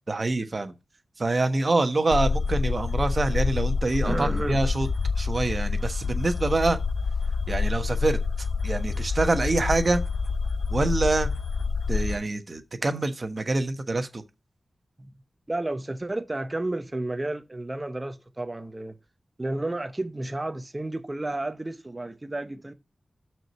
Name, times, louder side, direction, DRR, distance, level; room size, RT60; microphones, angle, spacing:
voice 1, 0.1-0.7 1.2-4.9 5.2-6.8 7.5-8.2 8.6-10.0 10.7-11.3 11.9-14.2, right 2 dB, 45° right, 1.2 m, -25 dB
sound 1, 2.1-12.2, left 4 dB, 80° left, 0.7 m, -27 dB
voice 2, 4.0-4.6 15.0-15.1 15.5-19.0 19.4-22.7, right 2 dB, 25° right, 0.8 m, -31 dB
6.3 x 4.6 x 6.5 m
wide cardioid pair, 70°, 0 cm